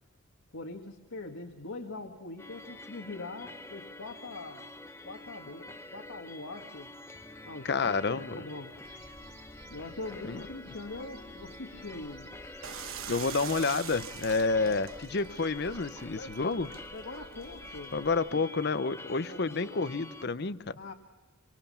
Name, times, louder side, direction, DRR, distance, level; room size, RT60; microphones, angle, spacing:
voice 1, 0.5-4.7 5.0-6.9 7.5-8.7 9.7-12.3 14.6-14.8 16.2-18.0 18.3-18.5 19.2-19.8 20.8-20.9, left 2 dB, 90° left, 1 dB, 1.9 m, -43 dB
sound 1, 2.4-20.3, left 2 dB, 10° left, 0.8 m, -47 dB
voice 2, 7.7-8.4 10.2-10.4 13.1-16.7 17.9-20.8, left 4 dB, 55° left, 14 dB, 0.7 m, -29 dB
sound 2, 8.8-18.2, right 1 dB, 50° right, 4.5 m, -54 dB
sound 3, 12.6-18.1, right 9 dB, 80° right, 1.1 m, -45 dB
27.0 x 24.0 x 5.6 m, 1.2 s
head